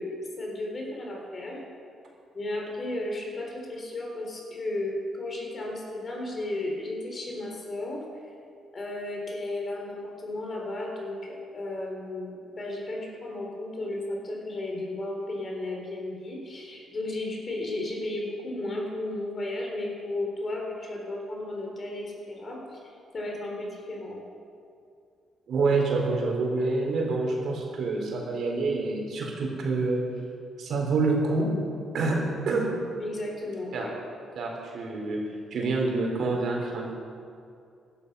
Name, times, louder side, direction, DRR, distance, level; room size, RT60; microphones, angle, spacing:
voice 1, 0.0-1.6 2.3-8.1 8.7-24.2 33.0-33.9, left 1 dB, 40° left, 0 dB, 4.0 m, -34 dB
voice 2, 25.5-30.0 30.6-31.5 31.9-32.2 32.4-32.7 33.7-33.9 34.3-35.2 35.5-36.9, right 3 dB, 65° right, -1 dB, 3.9 m, -27 dB
16.5 x 11.5 x 5.6 m, 2.4 s
cardioid pair, 90°, 0 cm